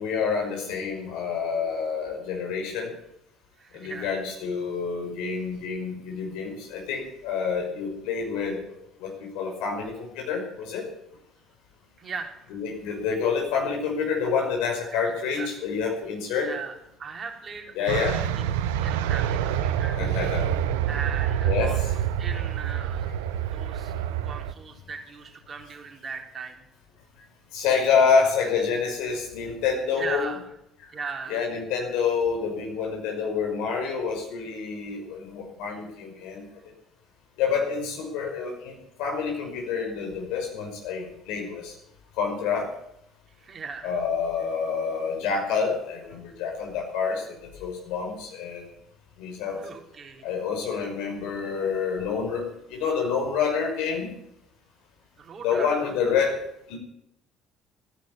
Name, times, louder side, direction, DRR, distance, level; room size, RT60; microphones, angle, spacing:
voice 1, 0.0-2.9 3.7-8.6 9.0-10.9 12.5-16.5 17.8-18.2 20.0-20.5 21.4-21.9 27.5-30.3 30.8-30.9 31.3-36.5 37.4-41.7 42.2-42.7 43.8-48.7 49.2-49.6 50.2-54.1 55.4-56.4 56.7-56.8, left 6 dB, 70° left, 1 dB, 5.6 m, -28 dB
voice 2, 3.6-4.2 12.0-12.5 14.9-15.5 16.4-16.7 17.0-20.2 20.9-23.1 23.5-23.9 24.2-26.6 30.0-30.6 30.9-31.4 43.4-44.0 49.5-50.2 55.2-55.8, right 5 dB, 40° right, 2 dB, 3.7 m, -38 dB
sound 1, 17.9-24.5, right 10 dB, 75° right, 0.9 m, -27 dB
15.5 x 10.5 x 8.9 m, 0.81 s
hypercardioid pair, 55°, 0 cm